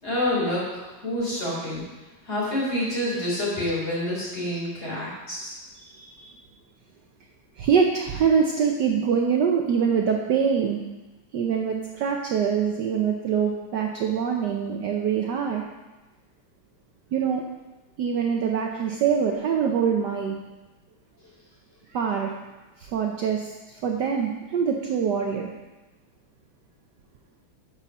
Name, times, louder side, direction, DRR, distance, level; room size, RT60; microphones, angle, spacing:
voice 1, 0.0-1.8 2.2-5.5, left 1 dB, 30° left, -6 dB, 4.1 m, -27 dB
voice 2, 5.8-6.3 7.6-10.8 11.3-15.6 17.1-17.4 18.0-20.4 21.9-22.3 22.8-23.5 23.8-25.5, right 7 dB, 65° right, 2 dB, 1.2 m, -24 dB
9.9 x 5.5 x 6.1 m, 1.1 s
omnidirectional pair, 2.3 m